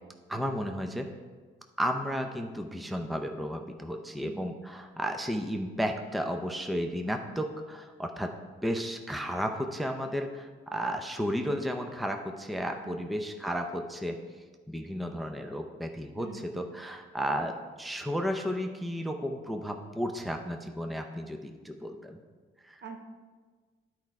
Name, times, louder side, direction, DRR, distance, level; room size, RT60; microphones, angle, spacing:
voice 1, 0.3-1.1 1.8-8.3 8.6-14.2 14.7-17.5 17.8-22.2 22.6-22.8, equal, ahead, 4 dB, 0.6 m, -33 dB
voice 2, 4.2-4.6 12.6-13.1 16.2-16.6 22.8-23.0, right 5 dB, 55° right, 4 dB, 1.1 m, -46 dB
10.5 x 4.7 x 4.3 m, 1.4 s
cardioid pair, 90°, 20 cm